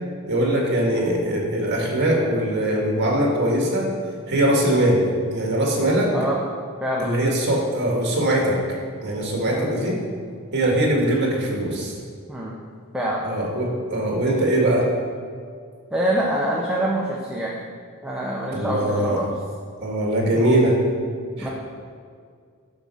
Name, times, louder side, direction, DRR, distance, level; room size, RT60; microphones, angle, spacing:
voice 1, 0.3-3.9 4.3-5.0 5.3-6.1 7.0-8.6 9.0-10.0 10.5-12.0 13.2-14.9 18.5-19.2 19.8-20.8 21.4-21.5, right 1 dB, 55° right, -1 dB, 1.9 m, -21 dB
voice 2, 12.9-13.3 15.9-17.7 18.0-19.3 20.3-20.7 21.4-21.5, right 1 dB, 5° right, -5 dB, 0.8 m, -25 dB
7.3 x 6.2 x 5.6 m, 2.1 s
head